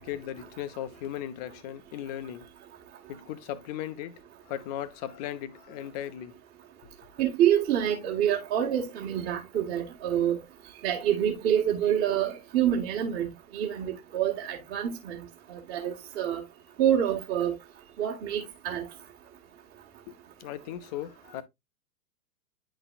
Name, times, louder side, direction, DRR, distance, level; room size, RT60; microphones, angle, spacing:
voice 1, 0.0-2.5 3.1-6.4 20.4-21.4, left 11 dB, 25° left, 0.5 m, -37 dB
voice 2, 7.2-10.4 10.8-13.3 13.5-15.2 15.5-16.4 16.8-17.6 18.0-18.8, right 10 dB, 30° right, 1.5 m, -27 dB
10.5 x 4.0 x 2.4 m
figure-of-eight pair, 100°, 46 cm